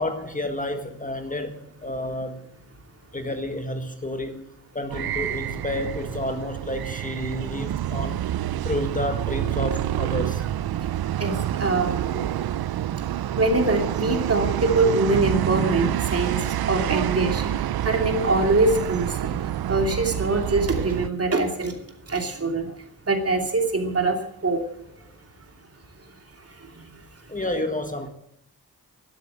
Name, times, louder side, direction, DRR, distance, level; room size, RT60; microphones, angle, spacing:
voice 1, 0.0-2.4 3.1-4.5 4.7-8.2 8.6-10.5 27.3-28.1, left 1 dB, 20° left, 6 dB, 1.6 m, -30 dB
sound 1, 4.9-21.1, right 12 dB, 85° right, 0.5 m, -27 dB
voice 2, 11.6-12.2 13.4-17.4 17.8-19.3 19.7-21.7 22.1-22.7 23.1-24.1 24.4-24.6, right 3 dB, 40° right, 4 dB, 2.7 m, -23 dB
12.5 x 12.0 x 7.6 m, 0.75 s
wide cardioid pair, 135°, 36 cm